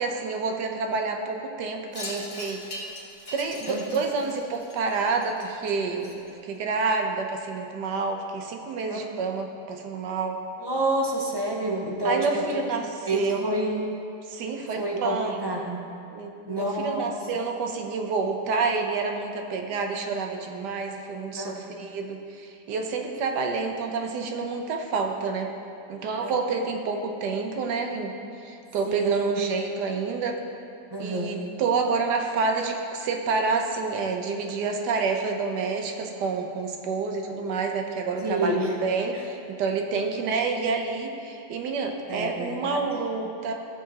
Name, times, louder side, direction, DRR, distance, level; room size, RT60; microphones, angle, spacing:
voice 1, 0.0-2.6 3.3-10.4 12.0-13.6 14.3-15.7 16.1-25.5 25.9-28.1 28.4-30.4 31.0-43.5, right 4 dB, 85° right, 3 dB, 1.4 m, -28 dB
Wind chime, 1.9-6.6, left 1 dB, 70° left, 2.0 m, -41 dB
voice 2, 10.6-12.6 13.0-13.8 14.8-15.9 16.5-17.1 21.4-21.7 26.2-26.3 28.8-29.2 30.9-31.4 38.2-38.7 39.1-39.2 42.1-42.9, right 1 dB, 25° right, -1 dB, 0.5 m, -28 dB
14.5 x 6.6 x 2.9 m, 2.6 s
omnidirectional pair, 1.8 m